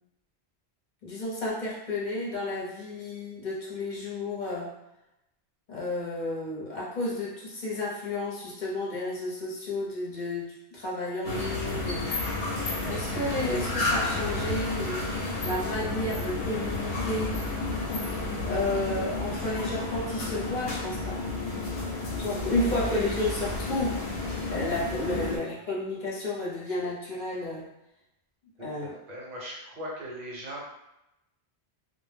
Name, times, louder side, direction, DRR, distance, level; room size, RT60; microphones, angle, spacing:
voice 1, 1.0-4.7 5.7-12.1 12.9-15.1 15.4-17.4 18.4-21.2 22.2-24.0 24.5-27.7 28.6-28.9, left 2 dB, 50° left, -5 dB, 0.8 m, -32 dB
sound 1, 11.2-25.4, left 2 dB, 85° left, 0.9 m, -31 dB
voice 2, 22.7-23.1 25.1-25.7 28.6-30.6, equal, 45° right, -4 dB, 0.8 m, -40 dB
2.1 x 2.0 x 3.2 m, 0.88 s
omnidirectional pair, 1.1 m